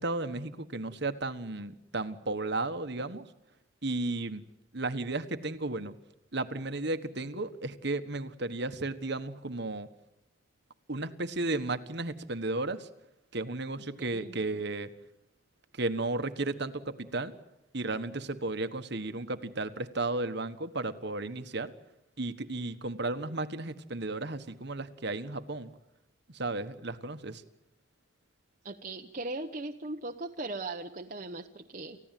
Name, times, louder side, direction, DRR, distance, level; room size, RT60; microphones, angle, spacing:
voice 1, 0.0-3.3 3.8-4.4 4.7-6.0 6.3-9.9 10.9-12.9 13.3-14.9 15.7-17.3 17.7-21.7 22.2-25.7 26.3-27.4, right 2 dB, 55° right, 10 dB, 1.4 m, -34 dB
voice 2, 14.0-14.4 28.6-32.0, right 2 dB, 35° right, 2 dB, 1.1 m, -39 dB
29.5 x 15.5 x 9.2 m, 0.87 s
head